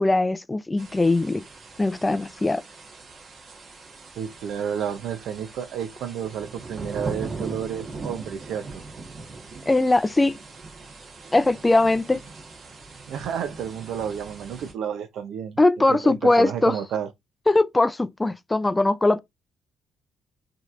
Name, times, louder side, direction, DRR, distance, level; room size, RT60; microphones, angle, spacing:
voice 1, 0.0-1.4 1.8-2.6 9.7-10.4 11.3-12.2 15.6-16.8 17.5-19.2, left 2 dB, 15° left, 0.4 m, -20 dB
sound 1, 0.8-14.7, right 3 dB, 55° right, 1.2 m, -40 dB
voice 2, 4.2-8.8 13.1-15.6 15.9-17.1, right 8 dB, 80° right, 0.6 m, -31 dB
5.0 x 2.9 x 2.5 m
cardioid pair, 90°, 0 cm